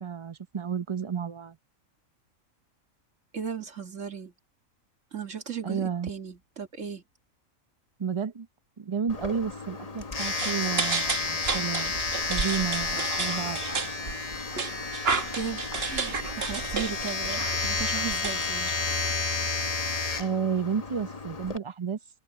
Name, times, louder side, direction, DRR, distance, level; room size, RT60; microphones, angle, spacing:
voice 1, 0.0-1.6 5.6-6.1 8.0-8.5 8.8-11.9 12.3-13.6 20.2-22.0, right 6 dB, 30° right, 0.6 m, -31 dB
voice 2, 3.3-4.3 5.1-7.0 15.3-18.8, right 7 dB, 65° right, 2.2 m, -36 dB
Domestic sounds home sounds, 9.1-21.6, left 4 dB, 30° left, 1.1 m, -31 dB
sound 1, 10.2-19.2, right 5 dB, 50° right, 1.5 m, -33 dB
omnidirectional pair, 1.4 m